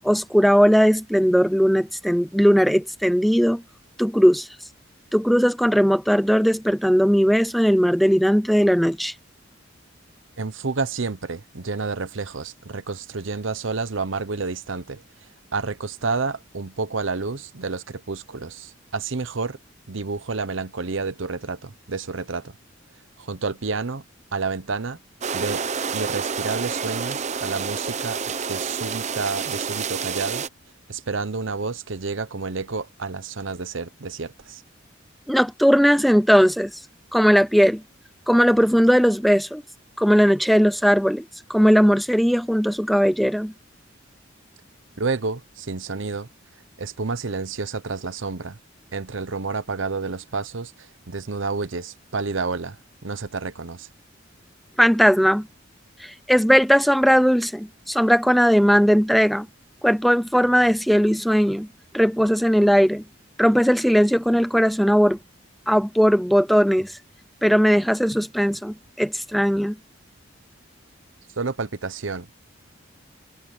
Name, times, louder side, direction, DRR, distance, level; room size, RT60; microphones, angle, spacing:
voice 1, 0.0-3.6 4.0-4.5 5.1-9.1 35.3-36.7 37.1-37.8 38.3-39.6 40.0-41.2 41.5-43.5 54.8-55.5 56.0-59.5 59.8-61.7 61.9-63.0 63.4-65.2 65.7-66.9 67.4-69.8, equal, ahead, 0.5 m, -18 dB
voice 2, 10.4-19.6 19.9-22.6 23.2-24.0 24.3-25.0 25.3-25.7 25.9-28.2 28.5-30.5 30.9-34.6 45.0-46.3 46.8-48.6 48.9-53.9 71.4-72.3, right 4 dB, 70° right, 0.9 m, -30 dB
sound 1, 25.2-30.5, right 6 dB, 35° right, 0.7 m, -28 dB
head